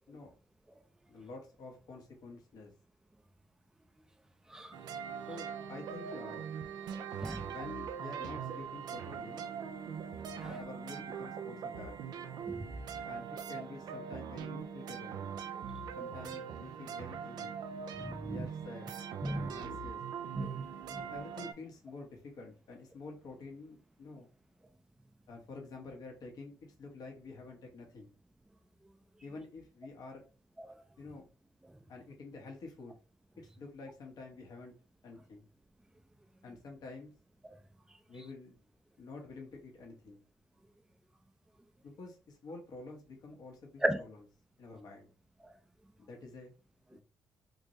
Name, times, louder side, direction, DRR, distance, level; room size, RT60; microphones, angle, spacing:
voice 1, 1.1-2.7 5.3-6.5 7.5-9.5 10.4-12.0 13.0-15.2 15.9-17.6 18.2-18.9 19.3-20.0 21.0-24.3 25.3-26.5 26.8-28.1 29.2-30.2 31.0-31.3 31.9-32.9 33.4-34.7 35.0-35.4 36.4-37.1 38.1-38.6 39.0-40.2 41.8-44.2 44.6-45.1 46.0-46.5 46.9-47.0, left 3 dB, 60° left, 1.3 m, -48 dB
sound 1, 4.7-21.5, right 7 dB, 70° right, 0.5 m, -42 dB
voice 2, 6.9-7.5 10.3-10.5 12.4-12.6 18.0-18.5 19.2-19.5 20.3-21.0 30.7-30.8 43.8-44.0, right 1 dB, 5° right, 0.5 m, -36 dB
3.7 x 2.6 x 3.1 m
supercardioid pair, 60°, 7 cm